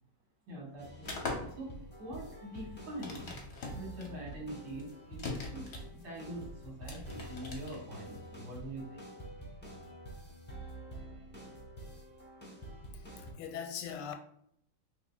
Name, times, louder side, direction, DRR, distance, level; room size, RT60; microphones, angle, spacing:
voice 1, 0.5-3.3 3.7-9.1, right 1 dB, 80° right, 1.9 m, -44 dB
sound 1, 0.8-13.3, right 1 dB, 10° left, 0.6 m, -48 dB
sound 2, 1.0-8.4, left 3 dB, 55° left, 0.8 m, -42 dB
voice 2, 12.9-14.1, left 8 dB, 90° left, 1.2 m, -41 dB
5.6 x 2.3 x 2.3 m
omnidirectional pair, 1.8 m